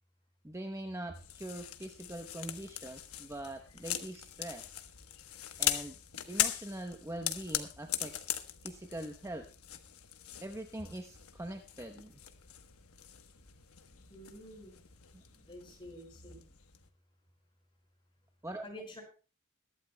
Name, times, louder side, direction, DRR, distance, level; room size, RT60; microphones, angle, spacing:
voice 1, 0.4-4.7 5.6-6.0 6.3-8.3 8.6-9.5 10.4-12.2 15.1-15.2 18.4-18.6, right 1 dB, 15° right, 5 dB, 0.9 m, -43 dB
sound 1, 1.1-16.9, left 11 dB, 80° left, 1.2 m, -40 dB
voice 2, 14.1-14.7 15.4-16.4 18.6-19.0, equal, 25° left, 1 dB, 5.1 m, -48 dB
21.5 x 12.0 x 2.2 m, 0.34 s
head